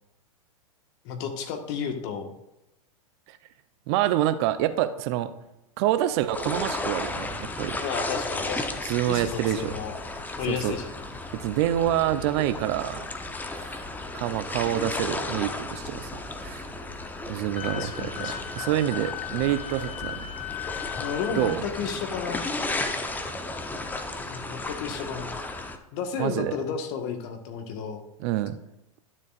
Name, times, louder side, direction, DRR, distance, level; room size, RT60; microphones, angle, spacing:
voice 1, 1.0-2.3 7.8-9.9 10.4-10.9 17.7-18.5 21.0-22.4 24.2-25.3 25.9-28.0, left 6 dB, 50° left, 5 dB, 1.5 m, -33 dB
voice 2, 3.9-5.3 5.8-7.8 8.8-9.7 10.5-10.8 11.3-13.0 13.6-13.8 14.1-16.1 16.4-16.7 17.3-20.3 21.4-21.6 26.2-26.6 28.2-28.6, right 12 dB, 50° right, 12 dB, 0.6 m, -27 dB
sound 1, 6.3-25.8, left 2 dB, 10° left, 0.8 m, -34 dB
Wind instrument woodwind instrument, 17.6-21.6, left 12 dB, 80° left, 1.0 m, -37 dB
12.0 x 7.3 x 2.5 m, 0.88 s
hypercardioid pair, 105°, 18 cm